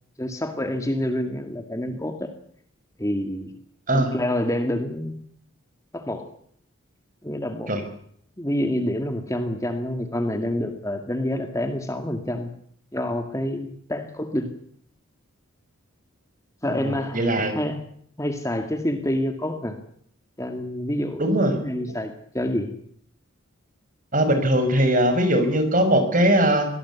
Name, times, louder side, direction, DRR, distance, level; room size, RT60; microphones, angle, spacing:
voice 1, 0.2-2.3 3.0-3.5 3.9-5.2 5.9-6.3 7.2-7.7 8.4-12.5 12.9-14.5 16.6-17.2 17.5-17.8 18.2-19.8 20.4-21.3 21.6-22.7, left 1 dB, 15° left, 6 dB, 2.1 m, -27 dB
voice 2, 16.7-17.6 21.2-21.6 24.1-26.7, right 1 dB, 40° right, 7 dB, 5.7 m, -20 dB
24.0 x 18.5 x 8.4 m, 0.65 s
head